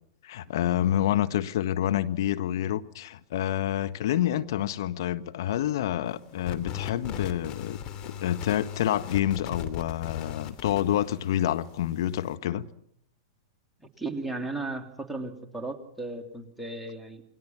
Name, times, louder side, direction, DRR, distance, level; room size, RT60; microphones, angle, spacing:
voice 1, 0.2-7.8 8.0-12.7, left 12 dB, 55° left, 1.5 m, -28 dB
sound 1, 6.4-12.3, left 9 dB, 35° left, 3.0 m, -39 dB
voice 2, 13.8-17.2, right 2 dB, ahead, 3.3 m, -35 dB
29.0 x 22.0 x 6.0 m
figure-of-eight pair, 100°, 3 cm